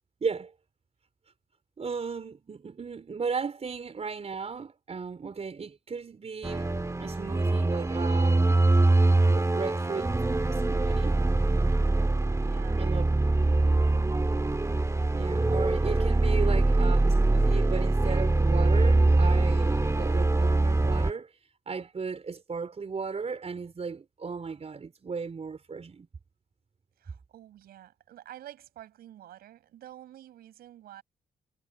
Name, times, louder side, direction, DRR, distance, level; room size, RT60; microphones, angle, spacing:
voice 1, 0.2-0.5 1.8-8.6 9.2-10.1 10.5-11.2 12.8-13.0 15.1-21.3 21.7-26.1, right 5 dB, 40° right, 4.1 m, -35 dB
sound 1, 6.4-21.1, right 2 dB, 20° right, 1.7 m, -23 dB
voice 2, 12.4-12.8 13.4-13.9 27.0-31.0, right 12 dB, 80° right, 6.0 m, -49 dB
supercardioid pair, 60°, 16 cm